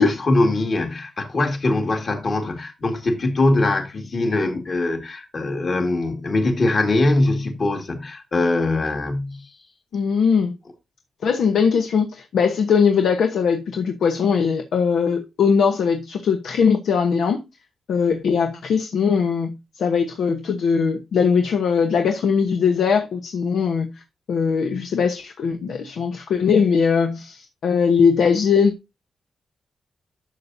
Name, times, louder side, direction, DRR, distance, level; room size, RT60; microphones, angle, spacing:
voice 1, 0.0-9.5, left 2 dB, 35° left, 1.9 m, -22 dB
voice 2, 9.9-10.5 11.2-17.4 17.9-24.0 24.3-28.7, left 6 dB, 75° left, 1.0 m, -20 dB
11.5 x 6.9 x 2.7 m
wide cardioid pair, 180°, 0 cm